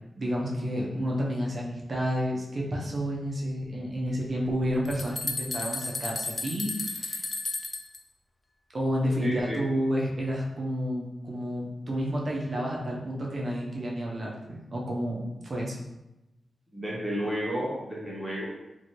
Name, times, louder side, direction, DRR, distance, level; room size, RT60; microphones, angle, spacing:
voice 1, 0.2-7.2 8.7-15.2 15.4-15.8, equal, 45° right, -3 dB, 0.6 m, -30 dB
sound 1, 4.5-4.6 4.9-8.0, left 3 dB, 35° left, 0.3 m, -33 dB
voice 2, 9.2-9.6 16.7-18.5, equal, 10° right, -6 dB, 0.8 m, -31 dB
3.0 x 2.6 x 2.7 m, 0.95 s
wide cardioid pair, 90°, 0 cm